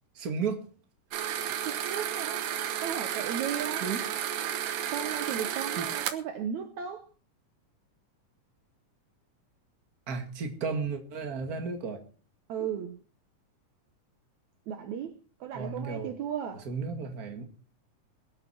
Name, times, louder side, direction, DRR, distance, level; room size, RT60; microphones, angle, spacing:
voice 1, 0.2-0.6 3.8-4.0 5.8-5.9 10.1-12.0 15.5-16.1 16.7-17.4, right 5 dB, 30° right, 2.2 m, -33 dB
sound 1, 1.1-6.1, right 10 dB, 90° right, 2.9 m, -32 dB
voice 2, 1.6-2.5 2.8-3.9 4.9-7.0 12.5-13.0 14.7-15.1 15.4-16.6, right 8 dB, 65° right, 2.2 m, -35 dB
22.5 x 8.8 x 4.3 m
omnidirectional pair, 3.8 m